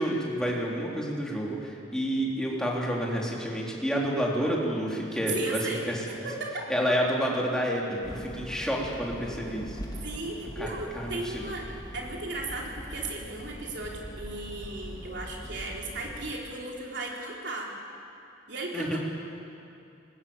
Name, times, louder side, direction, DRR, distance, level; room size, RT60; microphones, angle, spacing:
voice 1, 0.0-6.0 6.7-9.8 10.6-10.7 10.9-11.4 18.7-19.0, equal, 5° left, -3 dB, 3.5 m, -29 dB
voice 2, 5.3-6.7 10.0-11.7 11.9-17.7 18.5-19.0, right 2 dB, 60° right, -2 dB, 4.2 m, -36 dB
sound 1, 8.0-16.3, equal, 20° left, 2.3 m, -42 dB
20.5 x 20.0 x 8.8 m, 2.6 s
head